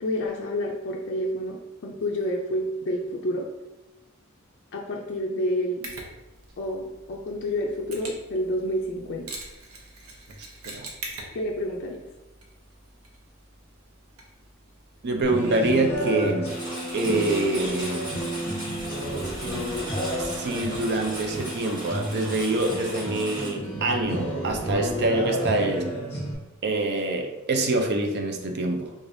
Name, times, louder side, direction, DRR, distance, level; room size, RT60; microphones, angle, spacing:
voice 1, 0.0-3.5 4.7-5.9 6.6-9.3 11.3-12.0, equal, 55° left, -1 dB, 0.4 m, -29 dB
Mechanisms, 5.8-15.7, right 2 dB, 85° right, 0.8 m, -44 dB
voice 2, 15.0-16.6 16.9-18.1 20.2-26.0 26.6-28.9, right 2 dB, 50° right, 4 dB, 0.5 m, -26 dB
sound 1, 15.2-26.3, equal, 30° left, 1.1 m, -31 dB
Engine, 16.4-23.5, equal, 20° right, 1.5 m, -37 dB
3.6 x 3.3 x 2.6 m, 1.0 s
head